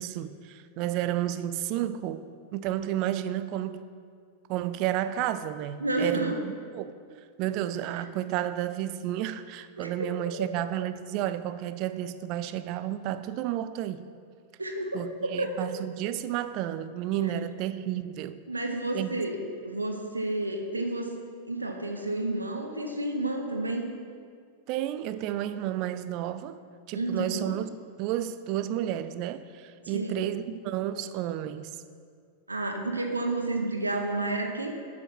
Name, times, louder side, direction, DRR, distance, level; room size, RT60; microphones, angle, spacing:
voice 1, 0.0-2.2 2.5-3.8 4.5-6.9 7.4-14.0 14.9-18.4 18.9-19.1 24.7-26.6 26.9-27.7 28.0-31.7, right 12 dB, 40° right, 0.4 m, -31 dB
voice 2, 5.8-6.4 8.0-8.1 9.8-10.1 10.4-10.5 14.6-14.9 15.2-15.5 17.2-17.3 18.5-19.4 19.6-21.1 21.5-23.9 26.9-27.5 29.9-30.3 32.5-34.7, right 2 dB, 80° right, 0.9 m, -30 dB
8.8 x 6.3 x 5.7 m
figure-of-eight pair, 90°, 0 cm